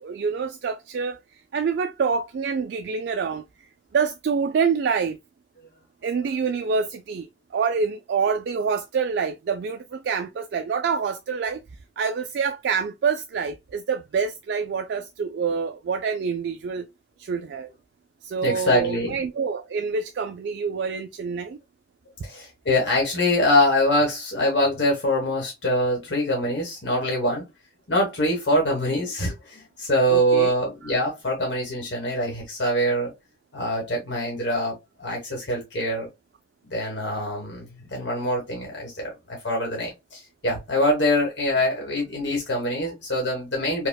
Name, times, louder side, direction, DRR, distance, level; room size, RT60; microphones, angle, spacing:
voice 1, 0.0-1.2 1.5-5.2 6.0-11.6 12.0-16.9 17.2-17.7 18.2-21.6 30.1-30.5 30.8-30.9 42.8-42.9, right 5 dB, 70° right, 0.3 m, -26 dB
voice 2, 18.4-19.1 22.2-27.4 27.9-33.1 33.5-36.1 36.6-43.9, equal, 85° left, 1.2 m, -24 dB
4.8 x 2.1 x 2.2 m
head